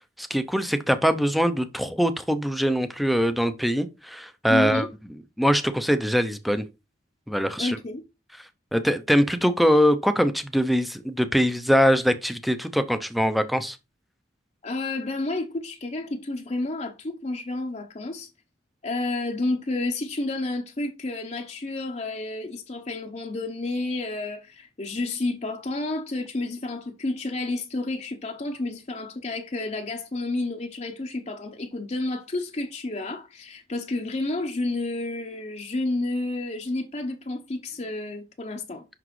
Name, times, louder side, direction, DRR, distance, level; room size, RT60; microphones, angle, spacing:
voice 1, 0.0-4.9 5.4-6.6 7.3-7.8 8.7-13.8, equal, ahead, 0.5 m, -23 dB
voice 2, 4.5-4.9 7.6-8.0 14.6-18.3 18.8-38.9, left 2 dB, 40° left, 0.7 m, -30 dB
5.9 x 5.8 x 3.1 m
head